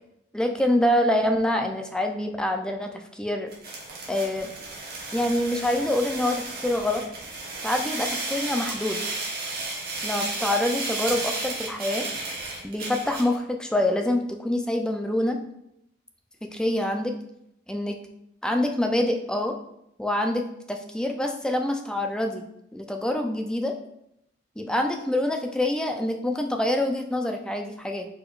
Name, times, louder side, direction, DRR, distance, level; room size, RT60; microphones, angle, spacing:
voice 1, 0.3-3.5 4.1-4.5 5.1-7.0 7.6-9.1 10.0-12.1 12.6-15.4 16.4-17.1 17.7-18.0 18.4-19.6 20.0-22.4 22.7-23.8 24.6-28.1, left 1 dB, 5° left, 3 dB, 0.4 m, -26 dB
sound 1, 3.5-13.4, right 2 dB, 55° right, 1.2 m, -33 dB
4.7 x 4.2 x 2.4 m, 0.79 s
head